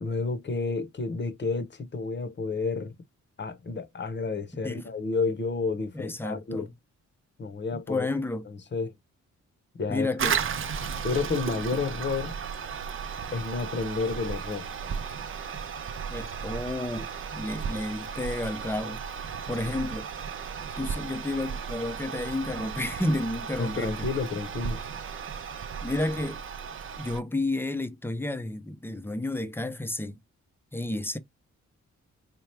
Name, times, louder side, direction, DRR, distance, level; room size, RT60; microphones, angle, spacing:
voice 1, 0.0-2.9 3.4-6.7 7.4-8.1 8.5-8.9 9.8-10.1 11.0-12.3 13.3-14.7 23.6-24.8, left 4 dB, 40° left, 0.9 m, -30 dB
voice 2, 5.9-6.7 7.7-8.5 9.9-10.4 16.1-19.0 19.5-20.1 20.8-24.0 25.8-26.4 27.0-30.2 30.7-31.2, left 2 dB, 10° left, 0.6 m, -31 dB
Toilet flush, 10.2-27.2, right 7 dB, 45° right, 0.5 m, -35 dB
4.5 x 2.3 x 3.2 m
cardioid pair, 95°, 29 cm